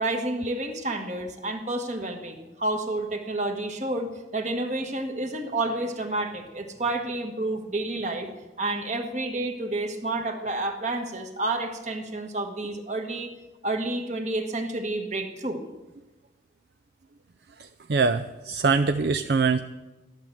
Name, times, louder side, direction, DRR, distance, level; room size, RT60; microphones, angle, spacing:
voice 1, 0.0-8.3 8.6-13.3 13.6-15.6, right 2 dB, 40° right, 5 dB, 1.7 m, -30 dB
voice 2, 17.6-19.6, right 4 dB, 60° right, 9 dB, 0.5 m, -23 dB
13.5 x 12.0 x 7.8 m, 1.1 s
head